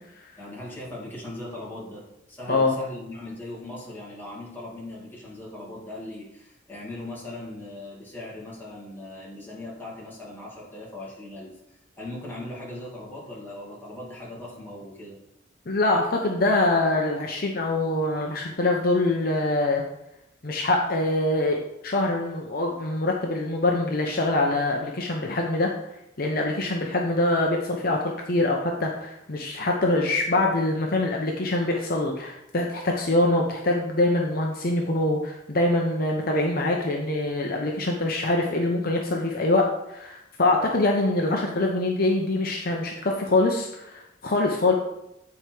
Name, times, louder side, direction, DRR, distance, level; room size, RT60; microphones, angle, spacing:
voice 1, 0.4-15.2, left 1 dB, 10° left, -6 dB, 2.1 m, -39 dB
voice 2, 15.7-19.8 20.4-25.7 26.2-44.7, left 2 dB, 50° left, 1 dB, 0.8 m, -24 dB
8.7 x 4.7 x 4.5 m, 0.86 s
head